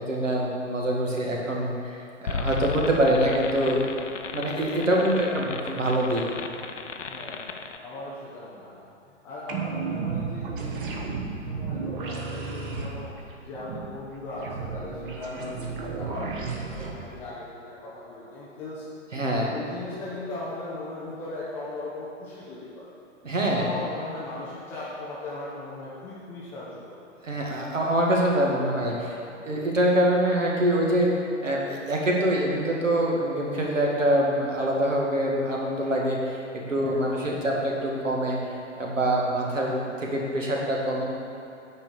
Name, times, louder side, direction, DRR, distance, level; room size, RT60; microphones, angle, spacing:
voice 1, 0.0-3.8 4.3-6.2 15.3-15.4 19.1-19.5 23.2-23.7 27.2-29.2 29.4-31.1 31.4-36.4 36.7-38.4 38.8-41.0, right 1 dB, 75° right, -2 dB, 2.0 m, -25 dB
sound 1, 2.3-7.8, left 4 dB, 75° left, 0.7 m, -35 dB
voice 2, 4.9-5.5 7.0-13.1 13.4-18.9 19.5-22.9 23.4-27.0 36.8-37.6, left 2 dB, 5° left, -8 dB, 0.4 m, -38 dB
sound 2, 9.5-16.9, right 5 dB, 40° right, 1.3 m, -33 dB
9.7 x 4.8 x 6.7 m, 2.8 s
figure-of-eight pair, 115°, 38 cm